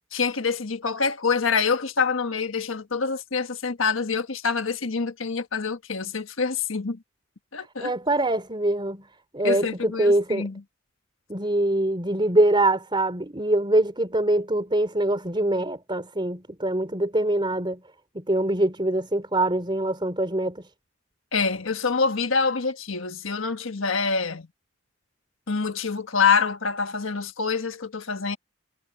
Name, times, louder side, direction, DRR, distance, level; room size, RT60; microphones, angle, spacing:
voice 1, 0.1-7.0 7.5-7.9 9.4-10.6 21.3-24.5 25.5-28.4, left 5 dB, 85° left, 1.4 m, -26 dB
voice 2, 7.6-9.1 9.3-10.5 11.3-17.8 18.1-20.6, right 1 dB, 25° right, 4.0 m, -24 dB
head